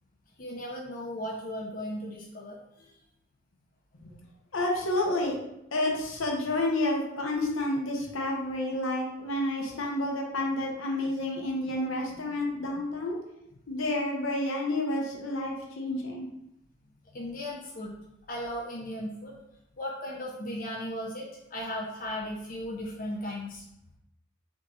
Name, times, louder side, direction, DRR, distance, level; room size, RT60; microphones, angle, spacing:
voice 1, 0.4-3.0 17.1-18.0 18.3-19.3 19.8-23.6, left 1 dB, 40° left, -3 dB, 0.6 m, -36 dB
voice 2, 4.5-5.4 5.7-13.2 13.7-16.3, left 1 dB, 70° left, 0 dB, 0.8 m, -30 dB
3.6 x 2.8 x 3.7 m, 0.82 s
head